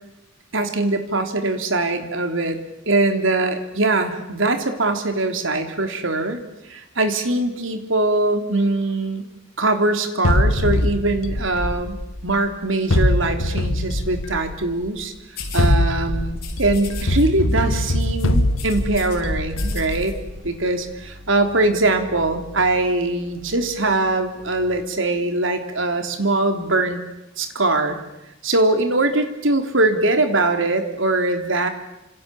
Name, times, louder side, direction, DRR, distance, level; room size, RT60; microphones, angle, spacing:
voice 1, 0.5-6.4 6.7-9.3 9.6-15.1 15.5-20.2 20.4-27.0 27.4-28.0 28.4-31.7, right 2 dB, 70° right, 6 dB, 3.5 m, -22 dB
sound 1, 10.2-12.4 12.9-14.7 15.4-20.5, left 1 dB, 85° left, 1.7 m, -22 dB
sound 2, 15.4-15.7 16.4-17.2 17.5-17.7 18.0-19.2 19.5-20.1, left 8 dB, 50° left, 7.0 m, -38 dB
sound 3, 19.5-24.8, left 1 dB, 45° right, 7.1 m, -43 dB
29.0 x 27.0 x 7.2 m, 0.92 s
head